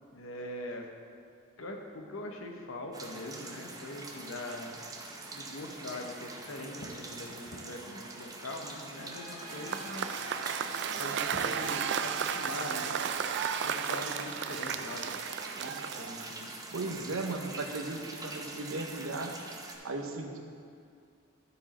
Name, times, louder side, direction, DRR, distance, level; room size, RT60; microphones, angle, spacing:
voice 1, 0.1-0.9 1.6-4.8 5.3-10.1 10.9-13.0 13.6-15.2 15.6-16.5, left 1 dB, 75° left, 2 dB, 1.0 m, -42 dB
sound 1, 2.9-19.8, right 2 dB, 20° right, 0.6 m, -45 dB
sound 2, 9.1-15.1, equal, 25° left, 1.8 m, -47 dB
Cheering / Applause / Crowd, 9.4-16.5, right 7 dB, 55° right, 0.3 m, -34 dB
voice 2, 16.7-19.3 19.8-20.4, right 2 dB, 85° right, 3 dB, 0.9 m, -36 dB
12.5 x 4.9 x 4.2 m, 2.4 s
head